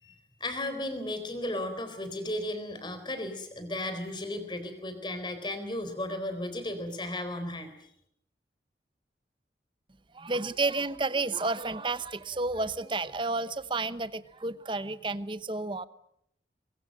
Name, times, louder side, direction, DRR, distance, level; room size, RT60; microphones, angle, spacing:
voice 1, 0.0-7.7, left 1 dB, 25° left, 9 dB, 4.0 m, -35 dB
voice 2, 10.1-15.9, right 3 dB, 30° right, 14 dB, 0.9 m, -31 dB
23.5 x 23.0 x 7.7 m, 0.73 s
head